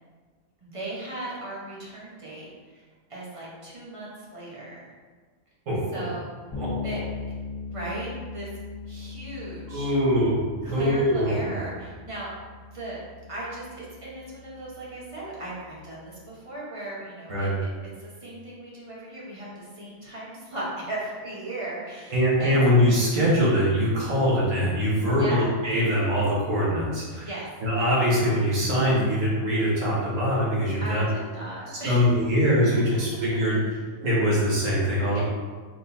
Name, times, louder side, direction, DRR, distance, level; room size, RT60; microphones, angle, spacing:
voice 1, 0.6-4.9 5.9-6.2 6.8-7.0 7.7-8.5 8.9-9.9 10.6-12.3 12.7-13.0 13.3-17.7 18.0-22.6 25.1-25.6 27.2-27.5 30.8-32.4 33.7-33.8 35.1-35.2, right 1 dB, 25° right, -7 dB, 1.1 m, -37 dB
voice 2, 5.7-6.0 6.6-6.7 9.7-11.5 17.3-17.5 22.1-27.3 27.6-31.1 31.8-33.6 34.0-35.2, equal, 65° right, -6 dB, 1.7 m, -23 dB
Bass guitar, 6.5-16.2, left 4 dB, 60° left, 1.7 m, -40 dB
4.5 x 3.7 x 2.7 m, 1.5 s
omnidirectional pair, 1.4 m